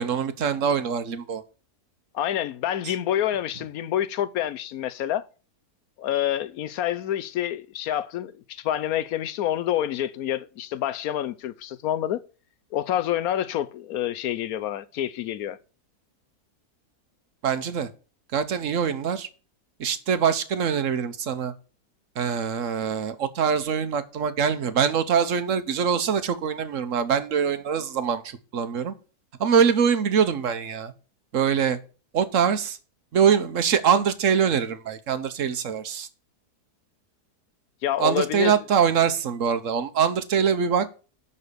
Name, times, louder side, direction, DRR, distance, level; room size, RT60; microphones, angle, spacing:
voice 1, 0.0-1.4 17.4-17.9 18.3-19.3 19.8-21.5 22.2-28.9 29.4-30.9 31.3-31.8 32.1-32.8 33.1-36.1 38.0-40.9, right 7 dB, 60° right, 1.2 m, -23 dB
voice 2, 2.1-5.2 6.0-12.2 12.7-15.6 37.8-38.6, left 11 dB, 75° left, 1.1 m, -27 dB
11.0 x 4.2 x 6.7 m
omnidirectional pair, 1.7 m